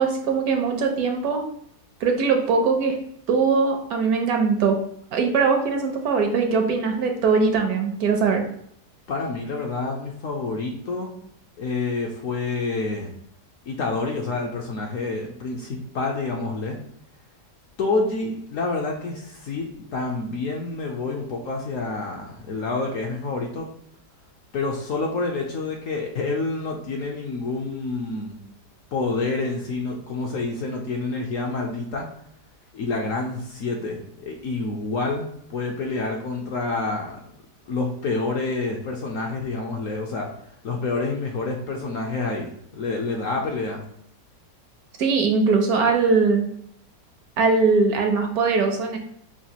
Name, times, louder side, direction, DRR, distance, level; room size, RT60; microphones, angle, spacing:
voice 1, 0.0-1.4 2.0-3.0 3.3-4.8 5.1-8.4 45.0-46.5 47.4-49.0, right 4 dB, 70° right, 4 dB, 1.0 m, -21 dB
voice 2, 9.1-11.1 11.6-13.1 13.7-16.8 17.8-23.7 24.5-28.4 28.9-32.1 32.7-37.2 37.7-40.3 40.6-43.8, left 3 dB, 70° left, 0 dB, 0.8 m, -28 dB
5.8 x 2.3 x 2.8 m, 0.69 s
omnidirectional pair, 1.8 m